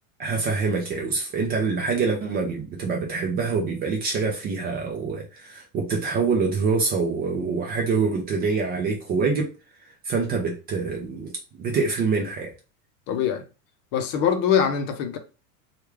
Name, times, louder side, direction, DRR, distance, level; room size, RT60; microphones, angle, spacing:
voice 1, 0.2-9.5 10.0-11.3 11.6-12.5, right 4 dB, 25° right, 0.4 m, -25 dB
voice 2, 13.1-13.4 13.9-15.2, left 8 dB, 50° left, 0.7 m, -23 dB
3.2 x 2.4 x 3.2 m
supercardioid pair, 135°, 43 cm